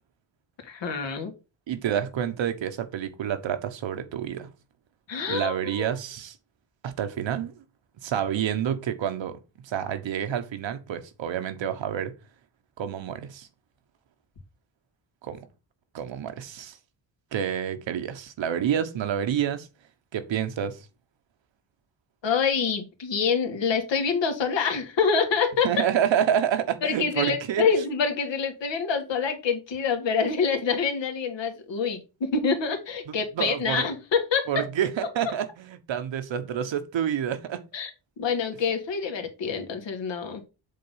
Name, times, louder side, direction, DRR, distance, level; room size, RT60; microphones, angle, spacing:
voice 1, 0.6-1.3 5.1-6.0 22.2-25.7 26.8-34.7 37.7-37.9 38.2-40.4, left 5 dB, 75° left, 2.1 m, -26 dB
voice 2, 1.7-4.5 5.3-6.4 6.8-7.6 8.0-12.1 12.8-13.5 15.2-15.5 15.9-16.8 17.3-19.7 20.1-20.9 25.6-27.6 33.4-33.8 34.5-37.6, right 9 dB, 80° right, 1.3 m, -28 dB
7.5 x 3.9 x 5.6 m
wide cardioid pair, 145°, 44 cm